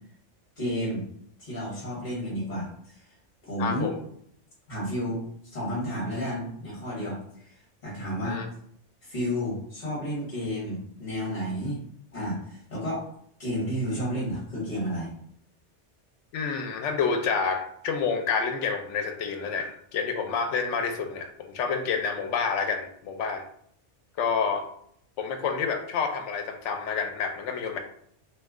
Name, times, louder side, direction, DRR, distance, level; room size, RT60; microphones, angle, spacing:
voice 1, 0.6-1.1 1.4-3.0 3.4-3.9 4.7-8.4 9.0-11.8 12.1-13.1 13.4-15.1, equal, 40° left, -6 dB, 1.1 m, -31 dB
voice 2, 3.6-4.0 8.2-8.5 16.3-23.4 24.2-24.6 25.2-27.8, left 5 dB, 80° left, 5 dB, 0.9 m, -28 dB
2.7 x 2.2 x 3.6 m, 0.67 s
omnidirectional pair, 1.2 m